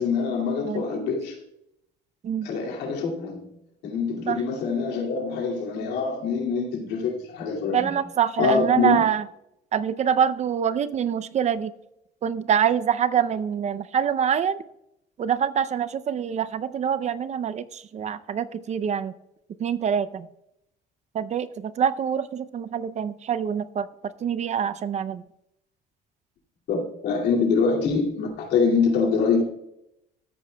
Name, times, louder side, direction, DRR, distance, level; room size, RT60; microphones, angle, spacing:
voice 1, 0.0-1.4 2.4-3.5 3.8-8.1 8.4-9.0 26.7-29.4, left 5 dB, 85° left, 2.4 m, -25 dB
voice 2, 7.7-9.2 9.7-11.7 12.2-14.6 15.2-19.1 19.6-20.3 21.1-23.9 24.2-25.2, right 8 dB, 40° right, 0.5 m, -25 dB
13.5 x 8.4 x 2.2 m
cardioid pair, 110°, 17 cm